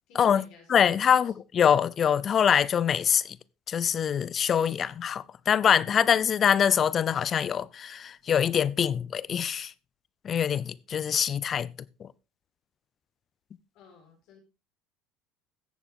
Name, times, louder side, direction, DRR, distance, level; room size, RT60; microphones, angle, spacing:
voice 1, 0.1-0.8 1.2-1.3 13.7-14.4, left 4 dB, 65° left, 5.0 m, -55 dB
voice 2, 0.7-3.4 3.7-9.7 10.2-11.7 12.0-12.1, left 8 dB, 40° left, 0.6 m, -24 dB
15.5 x 7.0 x 3.8 m
hypercardioid pair, 85°, 0 cm